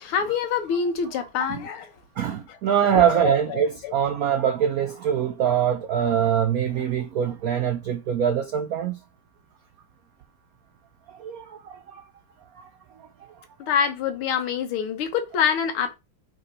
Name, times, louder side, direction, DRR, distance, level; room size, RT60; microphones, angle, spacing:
voice 1, 0.0-1.9 2.5-2.6 3.0-3.9 13.6-15.9, left 7 dB, 85° left, 1.9 m, -26 dB
voice 2, 2.2-9.0 11.1-12.0, right 9 dB, 90° right, 0.8 m, -23 dB
4.9 x 4.7 x 4.2 m
omnidirectional pair, 2.3 m